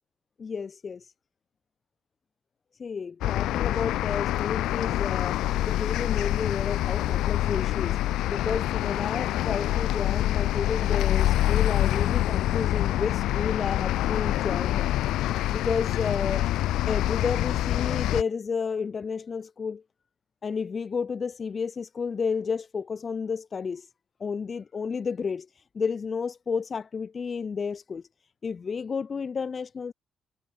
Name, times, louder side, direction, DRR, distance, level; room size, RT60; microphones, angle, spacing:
voice 1, 0.4-1.1 2.8-5.4 5.7-8.0 8.3-14.9 15.3-16.5 16.8-19.8 20.4-23.9 24.2-25.5 25.7-28.0 28.4-29.9, left 5 dB, 40° left, 3.1 m, -31 dB
sound 1, 3.2-18.2, left 14 dB, 85° left, 0.6 m, -26 dB
cardioid pair, 90°, 0 cm